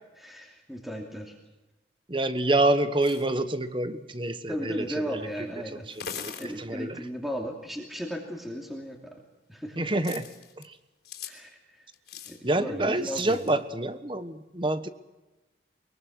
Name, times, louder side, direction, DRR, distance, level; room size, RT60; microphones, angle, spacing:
voice 1, 0.1-1.4 4.5-5.9 6.4-9.2 9.5-9.9 11.3-11.9 12.3-13.5, equal, ahead, 1 dB, 2.7 m, -36 dB
voice 2, 2.1-5.2 5.7-7.0 9.8-10.3 10.6-10.8 12.4-14.9, right 2 dB, 25° right, 11 dB, 1.3 m, -27 dB
sound 1, 3.0-3.3 4.9-5.0 5.8-6.5 8.6-8.7 10.0-10.7 11.0-11.3 11.9-12.4 13.0-13.5, left 7 dB, 65° left, 4.0 m, -41 dB
23.5 x 23.0 x 6.4 m, 1.1 s
head